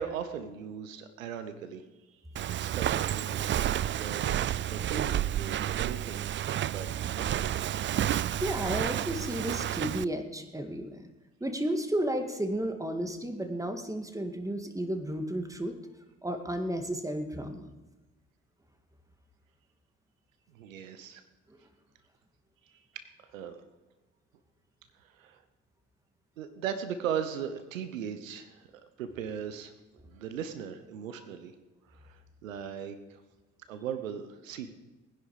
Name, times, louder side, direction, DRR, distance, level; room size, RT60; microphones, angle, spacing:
voice 1, 0.0-1.8 2.1-2.2 2.6-6.2 6.6-7.4 20.5-21.2 22.7-23.6 25.0-25.4 26.4-28.7 29.0-29.7 30.0-31.5 31.9-33.2 33.7-34.7, right 8 dB, 85° right, 10 dB, 1.1 m, -38 dB
Walk footsteps, 2.4-10.0, right 11 dB, 30° right, 0.4 m, -30 dB
voice 2, 8.4-11.0 11.4-15.8 16.2-17.7 21.5-21.6, right 1 dB, 10° right, 6 dB, 2.2 m, -33 dB
20.0 x 10.0 x 5.0 m, 1.1 s
hypercardioid pair, 55°, 39 cm